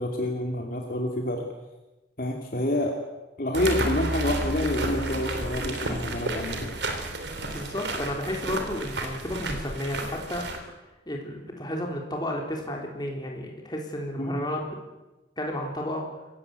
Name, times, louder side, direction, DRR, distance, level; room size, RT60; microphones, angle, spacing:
voice 1, 0.0-1.4 2.2-2.9 3.4-6.7 14.2-14.4, left 1 dB, 50° left, 1 dB, 2.8 m, -28 dB
sound 1, 3.5-10.6, right 2 dB, 70° right, 3.4 m, -31 dB
voice 2, 7.5-10.5 11.1-14.8 15.4-16.0, left 1 dB, 25° left, 0 dB, 3.8 m, -32 dB
26.5 x 16.0 x 8.4 m, 1.1 s
head